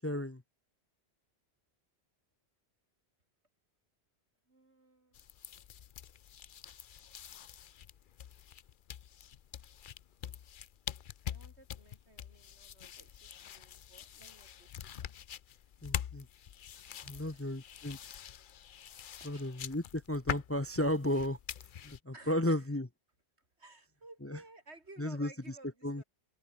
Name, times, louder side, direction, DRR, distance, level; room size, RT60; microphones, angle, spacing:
voice 1, 0.0-0.4 15.8-16.3 17.1-18.0 19.2-21.4 21.8-22.9 24.2-24.4 25.0-25.3 25.8-26.0, left 1 dB, 15° left, 0.9 m, -33 dB
voice 2, 4.5-5.2 11.2-15.1 16.9-17.6 19.2-19.5 22.1-22.8 23.6-26.0, right 2 dB, 75° right, 4.5 m, -57 dB
sound 1, 5.1-22.0, left 9 dB, 55° left, 0.7 m, -45 dB
open air
omnidirectional pair, 1.1 m